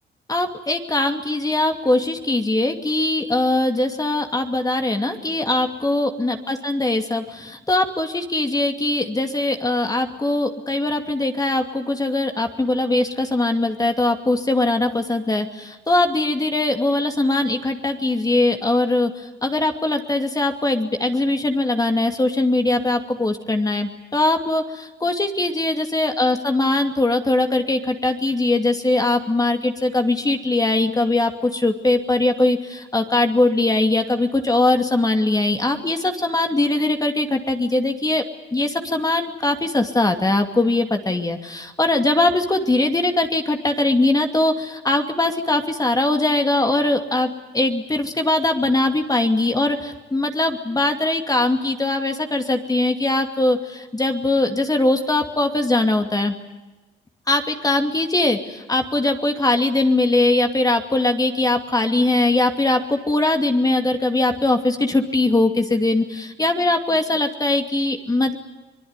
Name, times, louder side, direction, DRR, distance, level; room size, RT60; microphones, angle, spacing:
voice 1, 0.3-38.2 38.5-56.3 57.3-68.4, left 2 dB, 20° left, 5 dB, 2.5 m, -21 dB
25.0 x 21.0 x 9.8 m, 1.1 s
cardioid pair, 90°, 20 cm